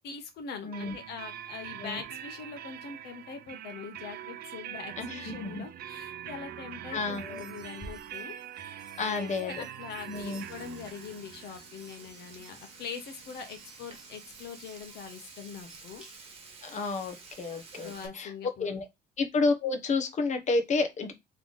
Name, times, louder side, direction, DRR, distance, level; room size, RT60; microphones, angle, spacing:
voice 1, 0.0-8.4 9.0-16.0 17.8-18.8, left 6 dB, 75° left, 1.3 m, -43 dB
voice 2, 0.6-0.9 1.8-2.0 5.0-5.6 6.9-7.5 9.0-9.6 10.1-10.4 16.6-18.3 18.6-18.9 19.2-21.1, left 3 dB, 45° left, 1.1 m, -30 dB
sound 1, 0.7-14.3, right 11 dB, 65° right, 0.5 m, -44 dB
sound 2, 7.0-16.5, right 3 dB, 5° right, 1.3 m, -54 dB
Frying (food), 10.1-18.1, right 4 dB, 35° right, 1.3 m, -51 dB
3.6 x 3.4 x 3.8 m
cardioid pair, 110°, 17 cm